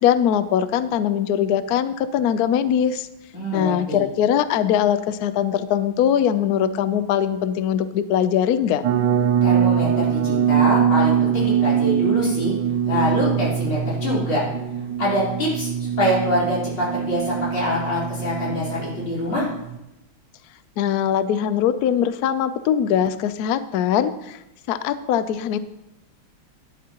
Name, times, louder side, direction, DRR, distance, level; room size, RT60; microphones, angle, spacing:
voice 1, 0.0-3.1 3.5-8.8 20.8-24.4 24.7-25.6, left 9 dB, 90° left, 13 dB, 0.8 m, -21 dB
voice 2, 3.3-4.0 9.4-12.5 12.9-14.4 15.0-19.5, left 1 dB, 70° left, -7 dB, 4.8 m, -24 dB
sound 1, 8.8-19.8, right 8 dB, 75° right, 1.0 m, -23 dB
12.0 x 11.5 x 2.9 m, 0.89 s
omnidirectional pair, 2.3 m